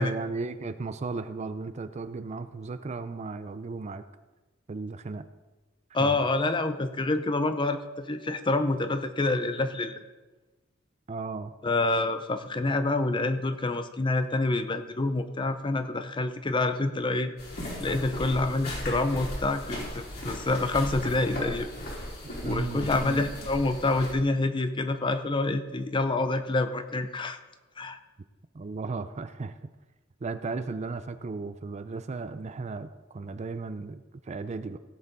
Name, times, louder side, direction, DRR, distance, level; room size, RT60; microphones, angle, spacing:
voice 1, 0.0-4.0 4.7-5.3 6.0-6.2 11.1-11.5 22.2-23.3 28.5-29.6 30.2-34.8, right 3 dB, 35° right, 11 dB, 0.4 m, -35 dB
voice 2, 5.9-9.9 11.6-17.3 17.8-21.7 22.4-27.4 27.8-28.0, left 2 dB, 25° left, 9 dB, 0.6 m, -27 dB
sound 1, 17.4-24.1, left 1 dB, 50° left, 3.4 m, -37 dB
16.0 x 7.6 x 4.0 m, 1.2 s
head